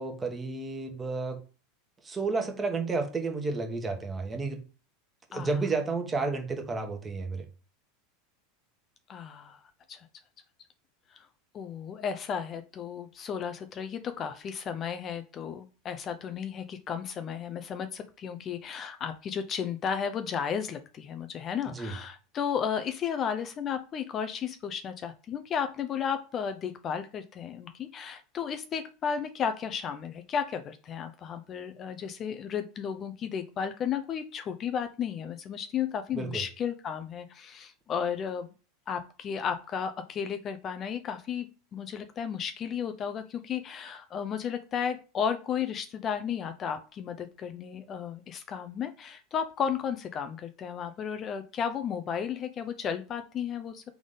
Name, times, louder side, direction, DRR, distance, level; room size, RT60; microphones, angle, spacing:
voice 1, 0.0-1.4 2.0-4.6 5.3-7.4 21.7-21.9 36.1-36.4, right 3 dB, 20° right, 5 dB, 1.2 m, -31 dB
voice 2, 9.1-9.6 9.9-10.1 11.1-11.3 11.5-38.5 38.9-53.8, left 7 dB, 35° left, 9 dB, 0.5 m, -34 dB
3.6 x 3.5 x 3.9 m, 0.34 s
hypercardioid pair, 100°, 0 cm